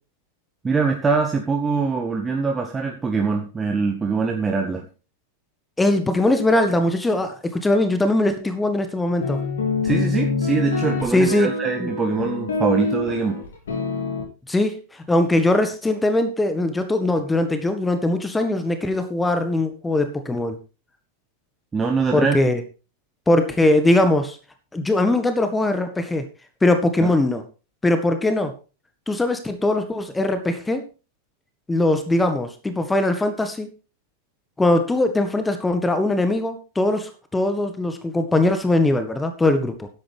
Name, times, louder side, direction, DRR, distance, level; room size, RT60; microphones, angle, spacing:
voice 1, 0.6-4.9 9.8-13.4 21.7-22.4 27.0-27.1, right 4 dB, 15° right, 2 dB, 1.7 m, -23 dB
voice 2, 5.8-9.4 11.1-11.5 11.8-11.9 14.5-20.6 22.1-22.6 23.3-24.4 24.7-26.3 26.6-27.4 27.8-28.5 29.1-30.8 31.7-33.7 34.6-39.9, left 2 dB, 10° left, 8 dB, 1.7 m, -21 dB
sound 1, 9.2-14.2, left 3 dB, 65° left, 4.5 m, -25 dB
13.5 x 10.5 x 3.6 m, 0.33 s
figure-of-eight pair, 90°, 0 cm